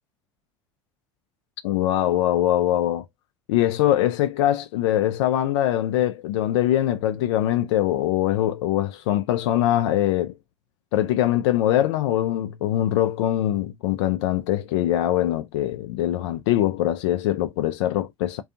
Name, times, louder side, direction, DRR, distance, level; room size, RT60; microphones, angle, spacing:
voice 1, 1.6-3.0 3.5-10.4 10.9-18.4, left 13 dB, 70° left, 0.4 m, -22 dB
2.4 x 2.3 x 2.7 m
hypercardioid pair, 70°, 15 cm